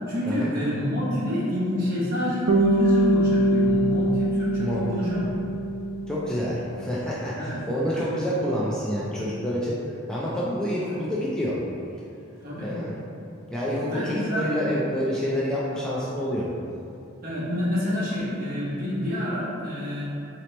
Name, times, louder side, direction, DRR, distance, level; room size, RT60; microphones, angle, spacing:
voice 1, 0.1-5.3 7.3-7.6 8.0-8.2 10.8-11.0 12.4-12.7 13.8-14.7 17.2-20.0, left 1 dB, 50° right, -8 dB, 1.1 m, -28 dB
Bass guitar, 2.5-6.7, right 2 dB, 90° right, 0.4 m, -23 dB
voice 2, 4.6-5.0 6.1-9.7 10.1-11.6 12.6-12.9 13.5-16.5, equal, 5° left, -8 dB, 0.4 m, -28 dB
3.9 x 2.9 x 3.1 m, 2.6 s
head